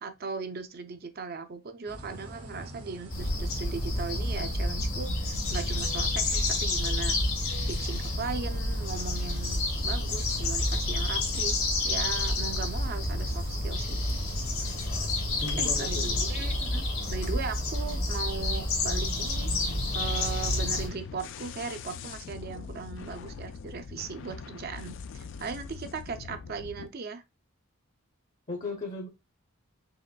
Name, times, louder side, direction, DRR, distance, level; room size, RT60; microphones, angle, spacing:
voice 1, 0.0-7.2 7.7-11.6 11.8-14.0 15.6-19.5 19.9-27.2, right 5 dB, 45° right, 0.5 m, -38 dB
sound 1, 1.9-19.0, equal, 75° right, 1.1 m, -43 dB
sound 2, 3.1-20.9, left 2 dB, 70° left, 1.9 m, -29 dB
voice 2, 15.4-16.2 28.5-29.1, left 2 dB, 35° left, 0.7 m, -36 dB
sound 3, 19.2-26.9, left 5 dB, 55° left, 0.3 m, -43 dB
4.9 x 3.0 x 2.2 m
head